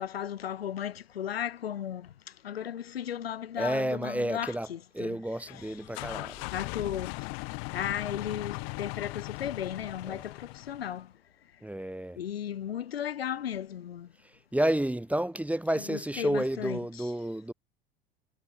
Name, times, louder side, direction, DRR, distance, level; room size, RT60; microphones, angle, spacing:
voice 1, 0.0-2.1 2.4-5.2 6.5-7.3 7.7-11.1 12.2-14.1 15.8-17.1, left 10 dB, 80° left, 2.0 m, -35 dB
voice 2, 3.6-4.7 4.9-6.3 10.0-10.2 11.6-12.2 14.5-17.5, right 1 dB, 5° right, 1.4 m, -30 dB
sound 1, 5.5-11.0, left 40 dB or more, 60° left, 7.4 m, -39 dB
figure-of-eight pair, 75°, 30 cm